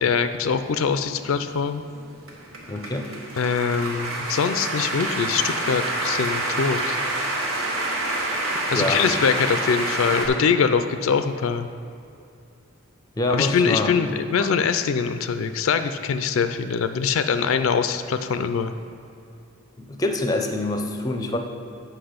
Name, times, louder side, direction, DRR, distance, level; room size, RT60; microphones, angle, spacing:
voice 1, 0.0-1.8 3.4-7.0 8.7-11.7 13.3-18.7, left 6 dB, 70° left, 10 dB, 0.4 m, -23 dB
sound 1, 1.0-10.3, right 2 dB, 75° right, 1.3 m, -28 dB
voice 2, 2.7-3.1 8.2-8.3 8.7-9.1 13.2-13.9 19.8-21.4, left 2 dB, 15° left, 4 dB, 0.5 m, -25 dB
7.9 x 5.9 x 5.0 m, 2.7 s
head